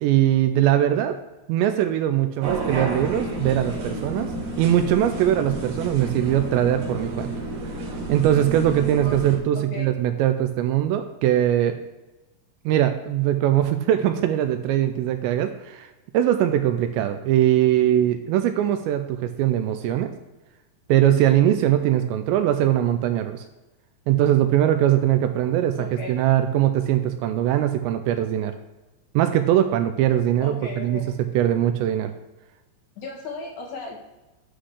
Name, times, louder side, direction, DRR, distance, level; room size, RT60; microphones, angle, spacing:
voice 1, 0.0-1.2 1.5-4.3 4.6-7.3 8.1-11.8 12.7-20.1 20.9-23.4 24.1-28.6 29.2-31.0 31.3-32.1, right 11 dB, 85° right, 8 dB, 2.7 m, -21 dB
sound 1, 2.4-9.4, right 1 dB, 60° right, 3.5 m, -31 dB
voice 2, 9.5-9.9 17.0-17.1 25.8-26.2 30.4-31.2 33.0-34.0, left 3 dB, 55° left, -2 dB, 2.3 m, -35 dB
10.0 x 3.9 x 6.5 m, 1.1 s
omnidirectional pair, 5.4 m